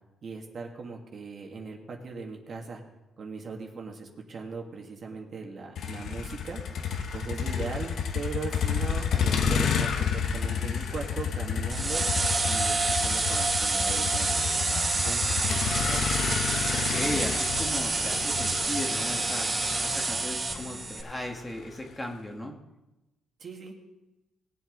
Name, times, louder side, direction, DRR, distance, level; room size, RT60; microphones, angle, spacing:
voice 1, 0.2-2.8 3.2-6.6 7.1-12.0 12.5-16.2 23.4-23.8, right 4 dB, 50° right, 1 dB, 2.1 m, -39 dB
Motor vehicle (road), 5.8-21.9, left 6 dB, 65° left, 1.1 m, -31 dB
sound 1, 11.7-21.0, right 3 dB, 30° right, 2.8 m, -28 dB
voice 2, 16.7-22.5, left 1 dB, 15° left, 2 dB, 1.9 m, -36 dB
19.5 x 7.8 x 4.0 m, 1.0 s
cardioid pair, 90°, 0 cm